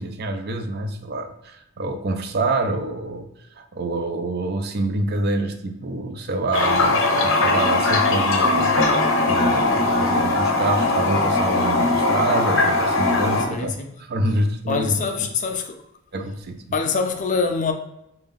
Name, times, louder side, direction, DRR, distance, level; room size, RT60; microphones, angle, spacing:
voice 1, 0.0-13.7 14.0-15.3 16.1-16.7, right 2 dB, 50° right, 0.5 m, -27 dB
Toilet flush, 6.5-13.5, left 2 dB, 65° left, 0.8 m, -20 dB
voice 2, 13.5-13.9 14.7-15.8 16.7-17.7, left 5 dB, 35° left, 0.4 m, -24 dB
5.1 x 2.3 x 3.6 m
head